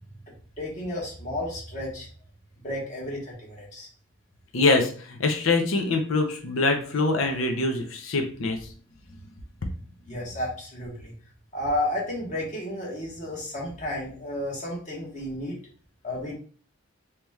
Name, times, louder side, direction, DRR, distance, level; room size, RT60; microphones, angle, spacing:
voice 1, 0.6-2.1 2.6-3.9 10.1-11.1 11.5-15.6 16.0-16.3, left 1 dB, 40° left, -4 dB, 1.1 m, -32 dB
voice 2, 4.5-8.6, left 3 dB, 75° left, 4 dB, 0.7 m, -24 dB
3.1 x 2.9 x 3.5 m, 0.43 s
head